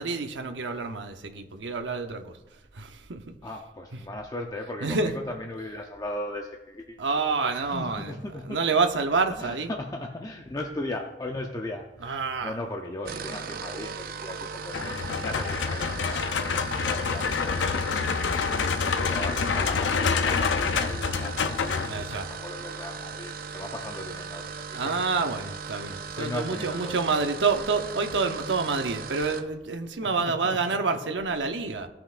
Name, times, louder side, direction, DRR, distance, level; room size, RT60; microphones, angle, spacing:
voice 1, 0.0-3.4 4.8-5.1 7.0-9.7 12.0-12.5 21.0-21.1 21.9-22.3 24.7-31.9, right 4 dB, 85° right, 6 dB, 0.8 m, -28 dB
voice 2, 3.4-7.0 7.4-8.6 9.4-25.0 26.2-27.5 30.2-30.8, left 1 dB, 20° left, 2 dB, 0.6 m, -37 dB
sound 1, 12.9-29.5, right 5 dB, 50° right, 0.5 m, -38 dB
sound 2, 14.7-22.3, left 5 dB, 90° left, 0.5 m, -27 dB
16.5 x 5.8 x 2.5 m, 1.0 s
head